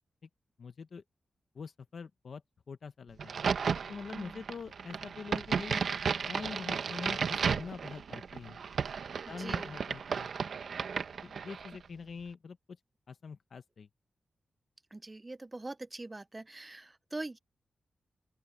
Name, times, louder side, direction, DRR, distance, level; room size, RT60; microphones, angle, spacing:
voice 1, 0.6-1.0 1.5-2.4 2.7-3.3 3.9-5.8 6.3-8.6 9.3-10.3 11.2-12.6 13.1-13.9, left 5 dB, 55° left, 0.9 m, -44 dB
Crack, 3.2-11.8, right 6 dB, 65° right, 1.1 m, -34 dB
voice 2, 4.1-4.4 9.4-9.8 14.9-17.4, right 2 dB, 15° right, 0.6 m, -43 dB
open air
wide cardioid pair, 175°, 0 cm